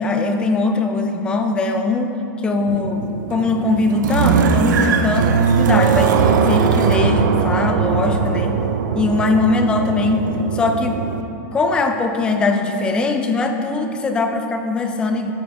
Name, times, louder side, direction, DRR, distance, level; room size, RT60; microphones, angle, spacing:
voice 1, 0.0-3.0 3.3-6.2 6.5-8.6 8.9-10.3 10.5-11.0 11.5-15.3, left 3 dB, 10° left, 5 dB, 0.3 m, -21 dB
sound 1, 2.7-11.2, right 6 dB, 85° right, 0.6 m, -19 dB
11.5 x 5.7 x 3.6 m, 2.8 s
supercardioid pair, 175°, 10 cm